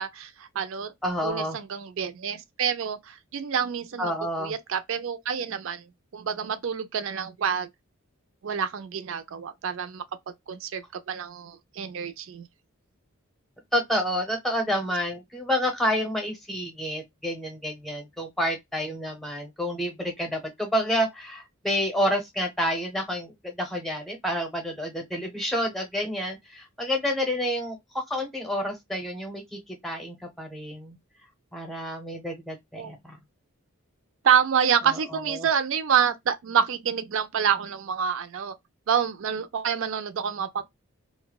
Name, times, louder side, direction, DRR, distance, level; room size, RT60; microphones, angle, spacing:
voice 1, 0.0-0.9 1.2-4.1 4.4-5.8 6.1-7.7 8.4-10.0 10.5-12.5 32.8-32.9 34.2-38.6 38.9-40.6, right 7 dB, 60° right, 0.4 m, -27 dB
voice 2, 1.0-1.6 4.0-4.5 13.7-27.8 28.1-31.0 31.5-33.2 35.1-35.5, equal, ahead, 0.7 m, -29 dB
2.6 x 2.1 x 2.2 m
head